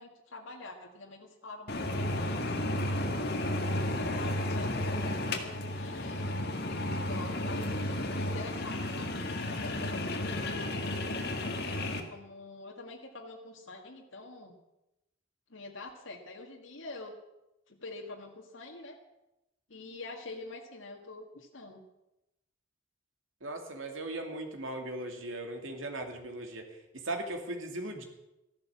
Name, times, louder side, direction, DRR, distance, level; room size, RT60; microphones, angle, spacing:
voice 1, 0.0-2.4 3.6-9.2 9.5-10.6 11.6-14.6 15.5-17.1 17.7-19.0 19.7-21.8, left 2 dB, 75° left, 0 dB, 1.9 m, -46 dB
sound 1, 1.7-12.0, left 1 dB, 50° left, 1.8 m, -33 dB
voice 2, 23.4-26.6 27.0-28.0, right 1 dB, 80° right, 4 dB, 2.5 m, -38 dB
14.5 x 12.0 x 7.2 m, 0.93 s
head